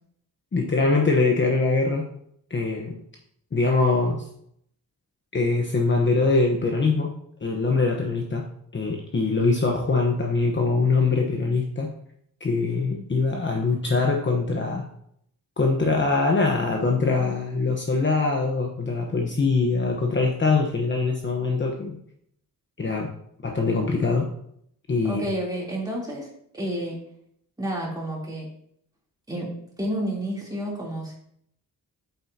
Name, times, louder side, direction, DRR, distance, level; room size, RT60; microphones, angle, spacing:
voice 1, 0.5-2.1 2.5-3.0 3.5-4.2 5.3-7.1 7.4-8.5 8.7-11.9 12.4-14.9 15.6-22.0 22.8-23.1 23.4-24.3 24.9-25.2, left 3 dB, 35° left, 0 dB, 1.1 m, -23 dB
voice 2, 25.0-26.3 26.5-27.0 27.6-28.5 29.3-31.1, right 1 dB, 10° right, -5 dB, 3.3 m, -30 dB
8.7 x 8.0 x 2.9 m, 0.68 s
wide cardioid pair, 140°, 35 cm